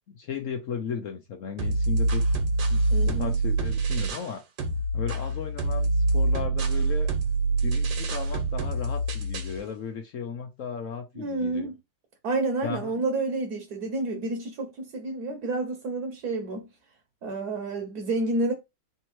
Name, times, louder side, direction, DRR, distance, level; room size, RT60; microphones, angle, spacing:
voice 1, 0.0-2.2 2.7-4.4 4.9-7.1 7.6-11.7 12.6-12.9, left 6 dB, 65° left, 0.8 m, -35 dB
sound 1, 1.6-4.3 4.6-9.6, right 2 dB, 80° right, 1.7 m, -25 dB
voice 2, 2.9-3.3 9.5-9.6 11.1-11.8 12.2-16.7 17.2-18.5, right 2 dB, 60° right, 1.4 m, -29 dB
3.5 x 3.0 x 4.5 m
omnidirectional pair, 2.0 m